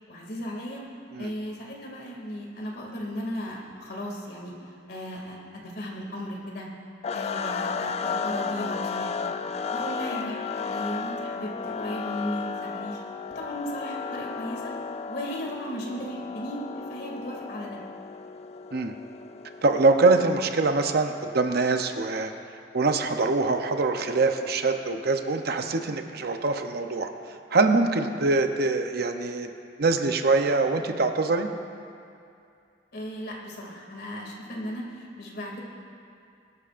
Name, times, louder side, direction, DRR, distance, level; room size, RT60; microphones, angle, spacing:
voice 1, 0.1-0.8 1.2-6.7 7.1-9.3 9.7-13.0 13.3-14.7 15.0-16.6 16.9-17.8 32.9-35.6, equal, 60° left, -2 dB, 2.4 m, -36 dB
sound 1, 7.0-21.1, left 5 dB, 35° left, 0.4 m, -34 dB
voice 2, 19.6-22.3 22.7-27.1 27.5-29.5 29.8-31.5, right 3 dB, 55° right, 6 dB, 0.7 m, -24 dB
22.0 x 12.5 x 2.5 m, 2.5 s
head